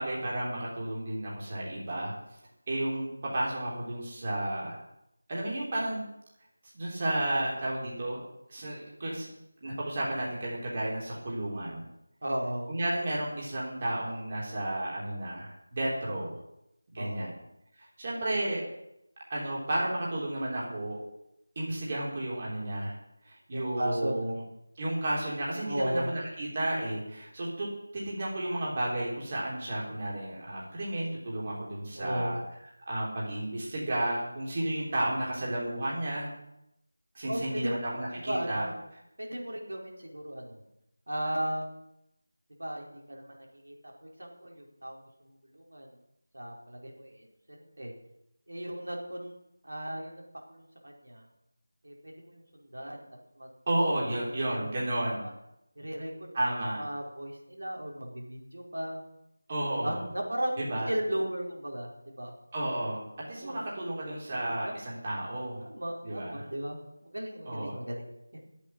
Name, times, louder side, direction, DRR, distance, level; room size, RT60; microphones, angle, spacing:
voice 1, 0.0-2.1 2.7-4.8 5.3-6.1 6.7-8.2 8.5-9.3 9.6-11.8 12.7-16.4 16.9-17.3 17.8-18.6 19.3-21.0 21.6-23.0 23.2-24.4 24.8-27.7 27.9-32.4 32.9-36.3 37.1-38.7 53.7-55.2 56.3-56.8 59.5-60.0 60.6-60.9 62.5-63.0 63.3-65.7 66.0-66.4 67.4-67.8, right 1 dB, 30° right, -4 dB, 3.6 m, -32 dB
voice 2, 12.2-12.7 17.0-17.3 23.5-24.3 25.6-26.1 31.9-32.4 37.3-37.8 38.2-38.7 39.2-40.6 41.1-41.6 42.6-43.4 43.6-43.7 44.0-45.9 46.3-47.9 48.5-49.3 49.6-50.2 50.5-51.3 51.8-53.1 53.3-53.5 54.5-54.7 55.2-55.3 55.7-56.3 56.8-59.0 59.8-62.3 63.4-63.6 64.3-64.8 65.7-68.0 68.3-68.4, right 1 dB, 85° right, -1 dB, 4.8 m, -36 dB
10.0 x 8.4 x 9.7 m, 0.82 s
figure-of-eight pair, 175°, 0 cm